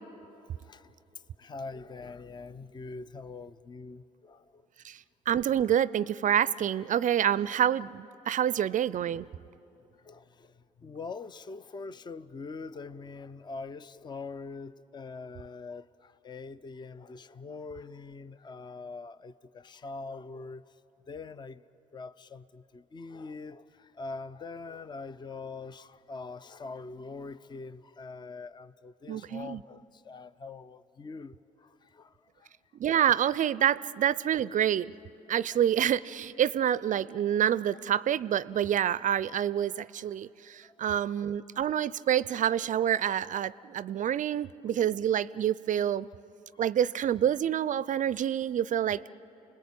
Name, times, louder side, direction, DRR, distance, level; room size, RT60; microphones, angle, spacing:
voice 1, 1.4-4.7 8.5-8.8 10.0-20.7 21.1-21.6 21.9-32.5 35.5-35.6 40.6-41.0 42.5-42.6, left 4 dB, 25° left, 0.6 m, -43 dB
voice 2, 5.3-9.3 29.1-29.6 32.8-34.9 35.3-46.1 46.6-49.1, right 10 dB, 45° right, 0.5 m, -27 dB
29.0 x 20.0 x 8.6 m
hypercardioid pair, 55°, 18 cm